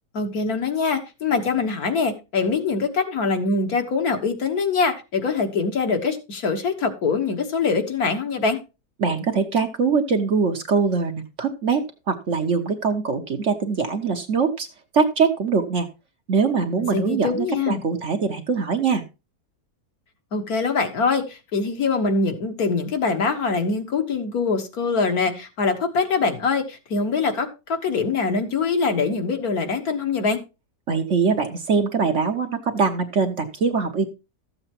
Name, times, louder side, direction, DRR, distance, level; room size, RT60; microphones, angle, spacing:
voice 1, 0.1-8.6 16.9-17.8 20.3-30.4, left 4 dB, 60° left, 1.8 m, -23 dB
voice 2, 9.0-14.7 14.9-15.9 16.3-19.0 30.9-34.1, right 5 dB, 50° right, 1.1 m, -22 dB
13.5 x 7.9 x 2.9 m
omnidirectional pair, 1.8 m